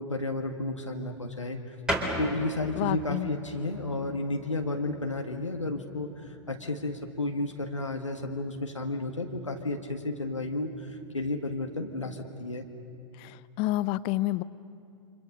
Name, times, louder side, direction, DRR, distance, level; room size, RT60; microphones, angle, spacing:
voice 1, 0.0-1.7 2.2-12.6, left 2 dB, 85° left, 3 dB, 1.7 m, -32 dB
sound 1, 1.9-12.1, equal, 5° right, 3.9 m, -40 dB
voice 2, 2.8-3.3 13.2-14.4, left 17 dB, 35° left, 18 dB, 0.7 m, -29 dB
29.0 x 26.0 x 6.7 m, 2.5 s
figure-of-eight pair, 100°, 16 cm